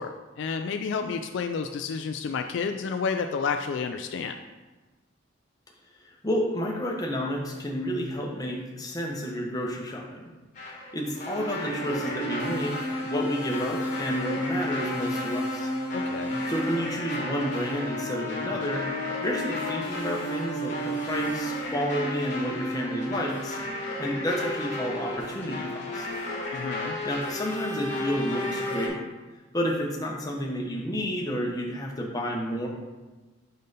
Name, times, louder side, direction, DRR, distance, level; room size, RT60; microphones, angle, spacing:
voice 1, 0.0-4.4 15.9-16.4 26.5-27.0, left 5 dB, 60° left, 6 dB, 0.3 m, -30 dB
voice 2, 6.0-10.2 10.9-15.7 16.5-18.9 19.2-23.6 24.0-25.7 25.9-26.1 27.0-29.0 29.5-32.7, equal, 20° left, -1 dB, 0.9 m, -30 dB
sound 1, 10.6-28.9, left 1 dB, 35° left, 1.3 m, -32 dB
5.4 x 5.3 x 4.0 m, 1.2 s
head